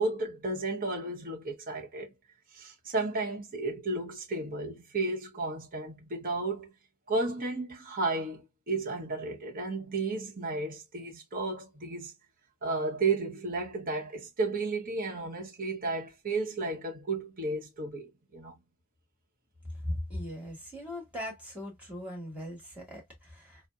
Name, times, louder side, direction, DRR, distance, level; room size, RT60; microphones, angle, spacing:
voice 1, 0.0-2.1 2.5-6.7 7.1-12.1 12.6-18.6, right 3 dB, 40° right, 0.8 m, -33 dB
voice 2, 19.8-23.6, left 1 dB, 5° right, 1.6 m, -39 dB
3.9 x 2.0 x 2.3 m
head